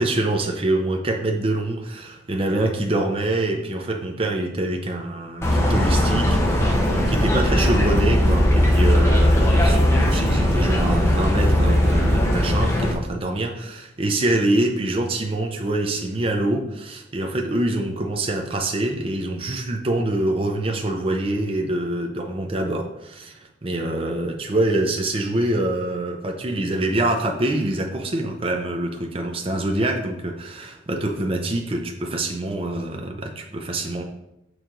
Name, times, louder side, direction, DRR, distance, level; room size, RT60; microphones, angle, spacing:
voice 1, 0.0-34.0, right 1 dB, 30° right, 2 dB, 0.6 m, -25 dB
sound 1, 5.4-12.9, left 1 dB, 15° left, 1.0 m, -18 dB
6.8 x 4.6 x 3.8 m, 0.86 s
head